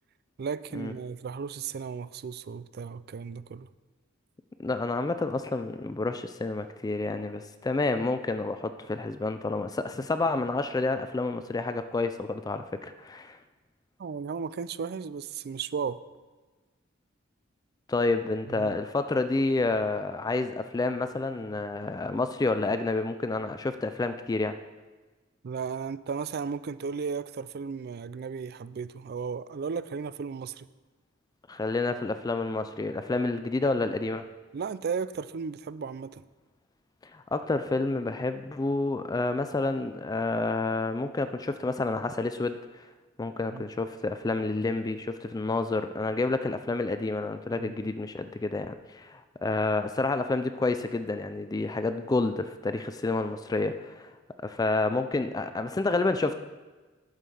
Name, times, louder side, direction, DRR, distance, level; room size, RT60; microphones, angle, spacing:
voice 1, 0.4-3.7 14.0-16.0 18.5-18.8 25.4-30.7 34.5-36.2 43.5-43.6 47.6-47.7, right 5 dB, 50° right, 15 dB, 0.4 m, -35 dB
voice 2, 4.6-13.4 17.9-24.6 31.5-34.3 37.1-42.8 43.2-54.1 54.4-56.4, left 3 dB, 20° left, 10 dB, 0.3 m, -29 dB
11.0 x 6.4 x 5.4 m, 1.3 s
head